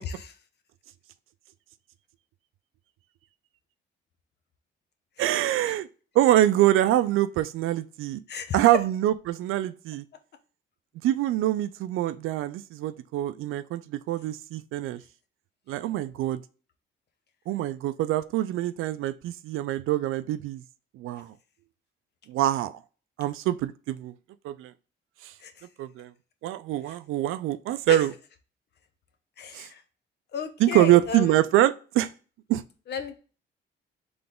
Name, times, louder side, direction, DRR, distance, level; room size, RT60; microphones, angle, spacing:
voice 1, 5.2-5.9 6.2-8.2 8.5-10.0 11.0-15.0 15.7-16.4 17.5-20.6 21.0-21.3 22.3-22.7 23.2-24.1 24.4-24.7 25.2-25.3 25.8-26.1 26.4-28.1 29.5-29.7 30.6-32.1 32.5-32.6, right 13 dB, 85° right, 0.4 m, -24 dB
voice 2, 8.3-8.7 25.4-25.7 26.9-27.0 27.9-28.0 29.4-29.8 30.3-31.4 32.9-33.2, left 6 dB, 55° left, 0.8 m, -34 dB
4.0 x 3.3 x 3.6 m
cardioid pair, 120°, 21 cm